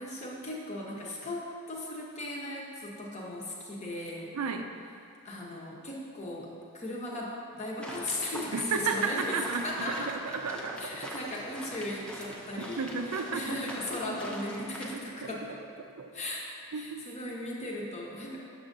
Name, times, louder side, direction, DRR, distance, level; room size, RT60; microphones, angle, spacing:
voice 1, 0.0-4.3 5.2-10.1 10.8-15.4 16.1-16.5 16.7-18.4, left 1 dB, 30° left, -3 dB, 0.8 m, -37 dB
voice 2, 4.3-4.7 8.5-11.2 12.6-13.6 14.1-14.2 15.2-15.3 16.0-16.1 16.7-17.0, right 5 dB, 75° right, 5 dB, 0.4 m, -33 dB
sound 1, 7.8-15.0, equal, 5° left, 0.4 m, -43 dB
6.7 x 6.2 x 2.6 m, 2.4 s
head